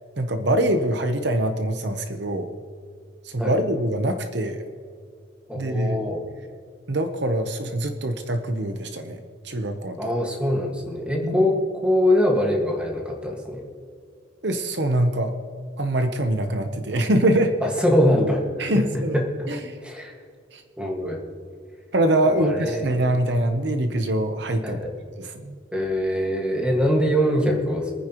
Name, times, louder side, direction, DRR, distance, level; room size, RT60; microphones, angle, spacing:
voice 1, 0.2-2.5 3.2-4.6 5.5-6.0 6.9-9.2 9.4-10.0 11.2-11.5 14.4-15.3 15.8-17.5 18.6-19.2 19.5-19.8 20.5-20.6 21.9-24.8 25.2-25.5, right 1 dB, 60° right, 7 dB, 0.9 m, -24 dB
voice 2, 5.5-6.2 10.0-13.7 17.6-18.9 19.1-19.5 19.8-20.1 20.8-21.2 22.4-23.1 24.6-24.9 25.7-27.9, equal, 5° right, 0 dB, 1.8 m, -23 dB
25.5 x 9.8 x 3.0 m, 2.2 s
head